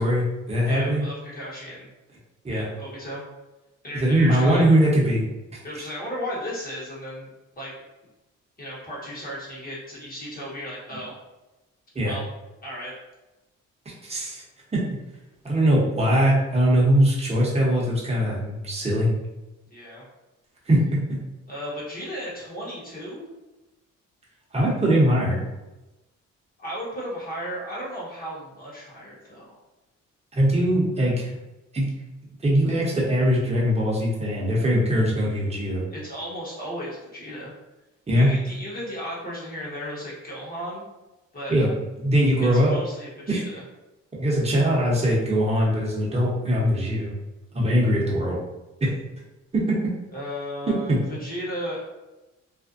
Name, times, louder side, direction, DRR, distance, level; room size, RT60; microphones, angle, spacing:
voice 1, 0.0-1.1 2.4-2.6 3.9-5.2 5.5-5.6 11.9-12.1 14.0-14.4 14.7-14.8 15.4-19.1 20.7-21.2 24.5-25.4 30.3-31.4 31.7-31.9 32.4-35.8 38.1-38.3 41.5-41.7 42.0-42.7 43.3-43.4 44.2-47.1 47.5-48.4 48.8-48.9 49.5-49.8 50.7-51.0, equal, 20° right, -4 dB, 0.8 m, -21 dB
voice 2, 0.6-1.9 2.5-3.2 3.8-4.7 5.6-7.3 7.6-7.8 8.6-11.1 12.0-12.2 12.6-12.9 19.7-20.0 21.5-23.2 24.8-25.4 26.6-29.6 35.9-37.5 38.1-40.8 41.3-41.5 42.4-43.6 50.1-51.9, equal, 30° left, -6 dB, 1.0 m, -35 dB
2.5 x 2.1 x 2.5 m, 1.0 s
cardioid pair, 90°, 30 cm